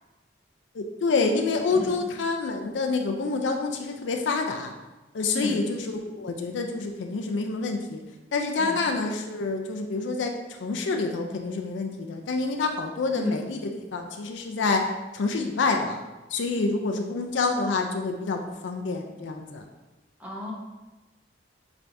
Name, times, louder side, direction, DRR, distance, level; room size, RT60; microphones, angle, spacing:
voice 1, 0.7-4.7 5.1-8.0 8.3-10.3 10.6-14.8 15.1-16.0 16.3-19.6, left 3 dB, 85° left, 4 dB, 0.4 m, -27 dB
voice 2, 1.7-2.0 5.3-5.6 8.6-8.8 13.1-13.4 20.2-20.5, left 2 dB, 10° right, -3 dB, 0.8 m, -33 dB
6.0 x 3.3 x 2.6 m, 1.1 s
head